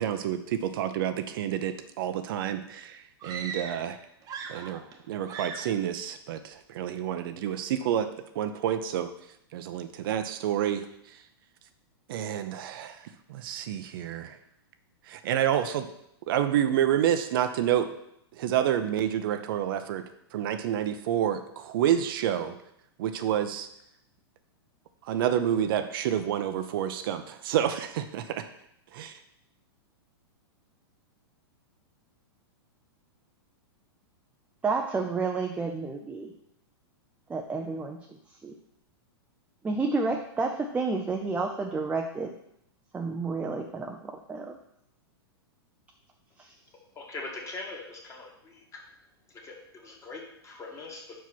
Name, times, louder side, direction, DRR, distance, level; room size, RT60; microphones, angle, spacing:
voice 1, 0.0-4.0 4.5-4.8 5.1-8.1 8.3-9.1 9.5-10.9 12.1-14.4 15.1-15.9 16.3-17.9 18.4-20.0 20.3-22.5 23.0-23.7 25.0-28.5 28.9-29.2, right 10 dB, 60° right, 9 dB, 0.6 m, -28 dB
sound 1, 3.2-3.9 4.2-5.0 5.3-5.8, right 6 dB, 25° right, 1.0 m, -39 dB
voice 2, 34.6-36.3 37.3-38.0 38.4-38.5 39.6-42.3 42.9-44.0 44.3-44.6, right 4 dB, 10° right, 3 dB, 0.5 m, -30 dB
voice 3, 46.9-48.8 49.4-51.2, left 3 dB, 20° left, 0 dB, 1.7 m, -42 dB
5.6 x 4.7 x 6.1 m, 0.78 s
hypercardioid pair, 125°, 13 cm